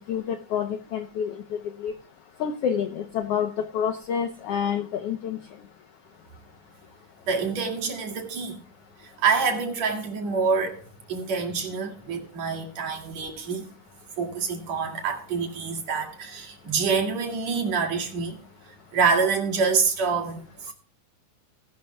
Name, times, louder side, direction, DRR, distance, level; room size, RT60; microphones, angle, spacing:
voice 1, 0.1-1.9 2.4-5.4, left 8 dB, 75° left, 8 dB, 1.4 m, -28 dB
voice 2, 7.3-8.6 9.0-10.8 11.1-13.7 14.2-18.4 18.9-20.7, right 5 dB, 60° right, 3 dB, 3.4 m, -26 dB
19.5 x 12.0 x 2.2 m, 0.40 s
omnidirectional pair, 3.6 m